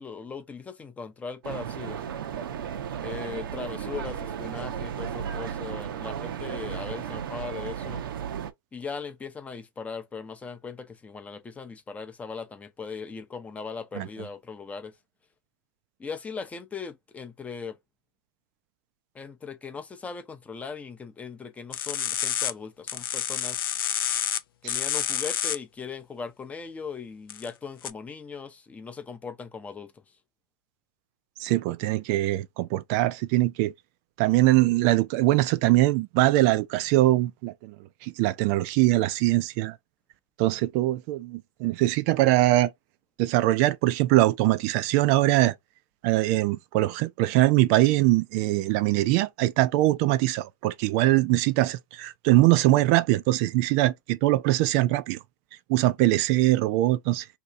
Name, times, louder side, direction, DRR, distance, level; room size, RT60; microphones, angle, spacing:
voice 1, 0.0-2.0 3.0-8.0 8.7-14.9 16.0-17.8 19.1-23.7 24.6-29.9, left 5 dB, 10° left, 0.5 m, -39 dB
sound 1, 1.4-8.5, right 8 dB, 80° right, 0.7 m, -34 dB
sound 2, 21.7-22.5 22.9-24.4 24.7-25.6 27.3-27.5 27.8-27.9, left 10 dB, 85° left, 0.4 m, -28 dB
voice 2, 31.4-33.7 34.2-37.7 38.0-39.8 40.4-42.7 43.2-45.5 46.0-55.2 55.7-57.3, right 16 dB, 45° right, 0.4 m, -22 dB
2.8 x 2.6 x 3.3 m
hypercardioid pair, 135°, 12 cm